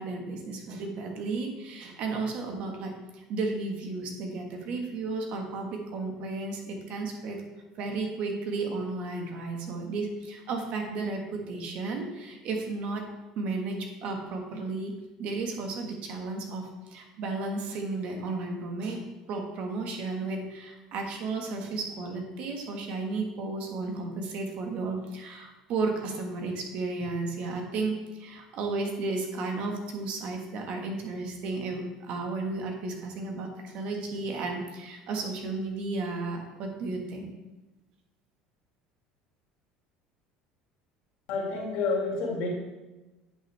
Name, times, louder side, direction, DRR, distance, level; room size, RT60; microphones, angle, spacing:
voice 1, 0.0-7.4 7.8-13.0 13.3-14.9 15.2-19.0 19.3-37.3, right 3 dB, 60° right, 3 dB, 1.7 m, -33 dB
voice 2, 41.3-42.5, left 4 dB, 70° left, -2 dB, 2.3 m, -29 dB
9.5 x 5.9 x 3.5 m, 1.1 s
supercardioid pair, 95°, 2 cm